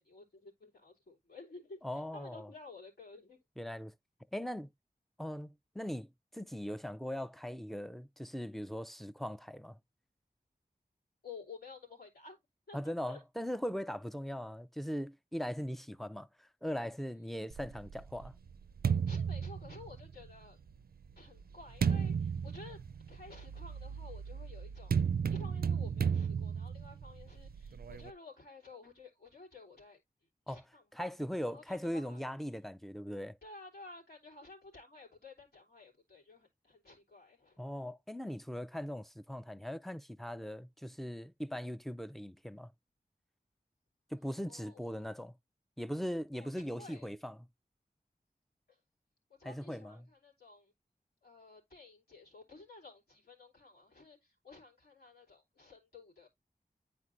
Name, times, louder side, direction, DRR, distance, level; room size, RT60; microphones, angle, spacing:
voice 1, 0.0-3.4 11.2-12.4 12.7-13.2 19.1-20.6 21.1-22.8 23.1-24.9 25.3-30.0 30.5-31.1 31.5-32.3 33.4-37.6 44.5-45.1 46.3-47.1 48.7-48.8 49.4-50.7 51.2-56.3, left 3 dB, 85° left, 3.2 m, -53 dB
voice 2, 1.8-2.5 3.6-3.9 4.3-4.7 5.2-9.8 12.7-16.3 16.6-18.3 30.5-30.6 30.9-33.4 37.6-42.7 44.1-45.3 45.8-47.4 49.4-50.0, equal, ahead, 0.5 m, -40 dB
sound 1, 17.5-20.3 21.0-28.1, right 7 dB, 75° right, 0.4 m, -34 dB
9.7 x 4.4 x 2.5 m
wide cardioid pair, 55°, 16 cm